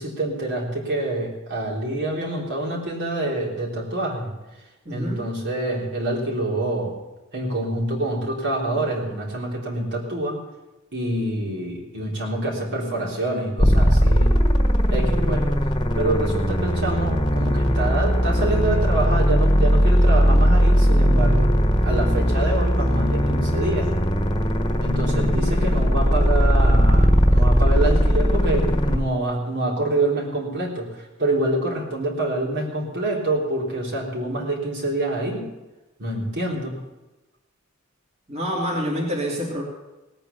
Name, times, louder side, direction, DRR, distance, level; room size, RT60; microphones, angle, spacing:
voice 1, 0.0-4.3 4.9-6.9 7.3-10.4 10.9-14.4 14.9-15.5 15.9-21.5 21.8-23.9 24.8-35.5 36.0-36.8, right 1 dB, 55° right, -2 dB, 3.6 m, -26 dB
voice 2, 4.9-5.2 38.3-39.6, equal, 30° right, -4 dB, 2.9 m, -27 dB
sound 1, 13.6-29.0, equal, 20° left, 1.5 m, -19 dB
18.5 x 9.0 x 6.9 m, 1.1 s
head